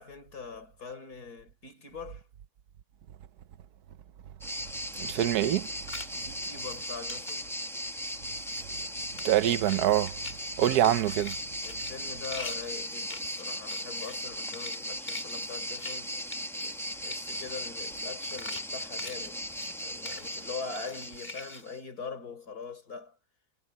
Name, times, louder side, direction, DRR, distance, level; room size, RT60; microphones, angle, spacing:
voice 1, 0.0-2.3 6.1-7.5 10.6-11.0 11.6-16.2 16.6-19.4 19.7-23.2, left 5 dB, 75° left, 5.3 m, -42 dB
sound 1, 4.4-21.8, equal, ahead, 0.7 m, -37 dB
voice 2, 5.0-5.7 9.2-10.2 10.6-11.3, right 12 dB, 80° right, 1.3 m, -25 dB
sound 2, 5.6-6.3 6.6-7.4 7.8-8.1 8.4-8.9 9.2-9.8 10.1-10.4 10.7-14.3 14.5-14.8 15.1-16.0 16.3-16.8 17.0-17.4 17.9-18.1 18.4-19.8 20.0-20.4 20.7-21.6, left 3 dB, 35° left, 2.4 m, -44 dB
omnidirectional pair, 1.7 m